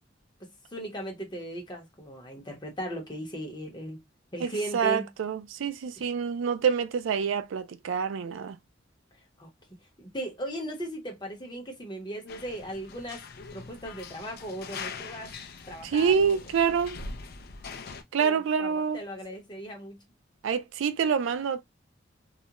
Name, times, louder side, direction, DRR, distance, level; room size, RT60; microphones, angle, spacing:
voice 1, 0.4-4.0 4.3-5.1 9.4-9.5 10.0-13.2 13.5-15.3 15.7-16.4 18.2-20.0, equal, 25° left, 0.8 m, -37 dB
voice 2, 4.4-8.6 15.8-17.0 18.1-19.0 20.4-21.6, right 6 dB, 90° right, 0.3 m, -27 dB
sound 1, 12.3-18.0, left 4 dB, 55° left, 0.4 m, -42 dB
2.4 x 2.1 x 2.8 m
head